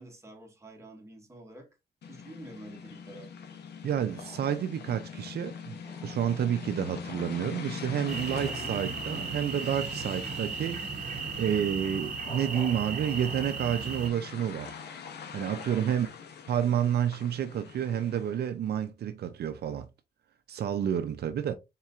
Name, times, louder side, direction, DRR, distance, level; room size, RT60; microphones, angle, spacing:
voice 1, 0.0-1.7 2.0-3.3 15.7-16.1, right 1 dB, 15° right, 1.3 m, -48 dB
sound 1, 2.0-18.5, left 6 dB, 80° left, 0.8 m, -43 dB
voice 2, 3.8-10.8 11.4-14.8 15.3-16.1 16.5-19.9 20.5-21.5, right 9 dB, 70° right, 0.5 m, -30 dB
sound 2, 4.0-9.7 12.1-13.8, left 1 dB, 35° left, 1.1 m, -51 dB
sound 3, 8.1-14.1, right 4 dB, 50° right, 0.9 m, -36 dB
4.2 x 3.7 x 2.3 m
cardioid pair, 110°, 17 cm